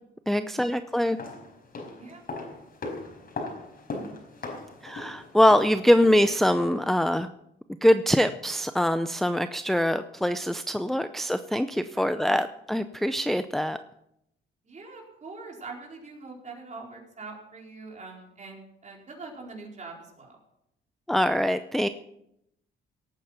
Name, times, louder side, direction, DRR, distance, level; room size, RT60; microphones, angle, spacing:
voice 1, 0.3-1.2 4.8-7.3 7.8-13.8 21.1-21.9, left 1 dB, ahead, 10 dB, 0.6 m, -23 dB
sound 1, 1.0-7.0 7.2-7.3, left 3 dB, 50° left, 4.8 m, -39 dB
voice 2, 11.9-12.4 14.6-20.4, right 3 dB, 35° right, 0 dB, 4.6 m, -43 dB
18.0 x 9.1 x 5.8 m, 0.80 s
cardioid pair, 90°, 20 cm